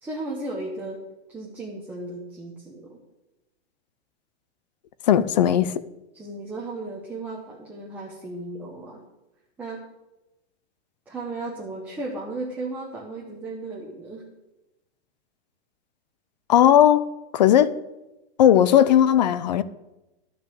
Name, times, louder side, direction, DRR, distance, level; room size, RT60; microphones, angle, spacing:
voice 1, 0.0-1.0 1.3-3.0 6.1-9.0 9.6-9.8 11.1-14.2, right 2 dB, 5° right, 0.8 m, -35 dB
voice 2, 5.1-5.7 16.5-17.1 17.3-17.8 18.4-19.6, left 10 dB, 40° left, 0.5 m, -17 dB
12.5 x 6.0 x 8.5 m
supercardioid pair, 175°, 35 cm